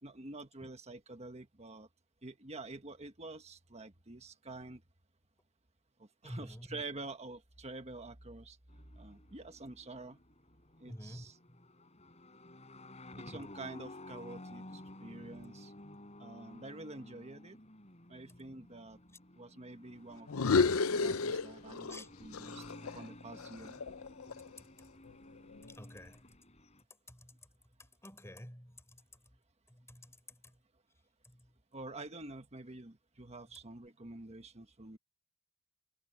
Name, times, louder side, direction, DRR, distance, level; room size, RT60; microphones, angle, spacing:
voice 1, 0.0-1.9 2.2-4.8 6.0-8.6 9.0-10.2 10.8-11.3 13.2-15.7 16.2-17.6 18.1-19.0 19.4-20.6 20.9-22.7 22.9-23.8 31.7-35.0, right 2 dB, 30° right, 1.4 m, -48 dB
voice 2, 6.2-6.8 10.9-11.7 15.2-15.4 18.3-18.5 21.9-22.1 24.3-24.9 25.6-26.4 27.1-27.5 27.8-29.3 29.7-30.6 31.2-31.5, left 1 dB, 10° left, 3.8 m, -51 dB
sound 1, 8.7-26.8, left 1 dB, 30° left, 4.7 m, -53 dB
sound 2, 20.3-22.0 22.3-24.6, left 4 dB, 75° left, 0.6 m, -32 dB
head